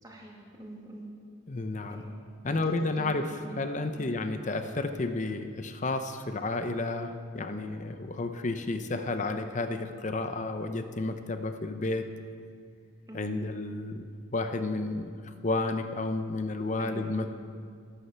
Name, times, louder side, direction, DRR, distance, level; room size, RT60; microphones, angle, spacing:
voice 1, 0.0-1.1 1.9-2.1 2.5-3.2 3.4-3.6 3.9-4.1 13.1-13.5 16.8-17.1, right 1 dB, 20° right, -2 dB, 2.2 m, -44 dB
voice 2, 1.5-2.0 2.4-12.1 13.1-14.0 14.3-17.3, left 2 dB, 35° left, 8 dB, 0.7 m, -31 dB
11.5 x 11.5 x 6.8 m, 2.2 s
head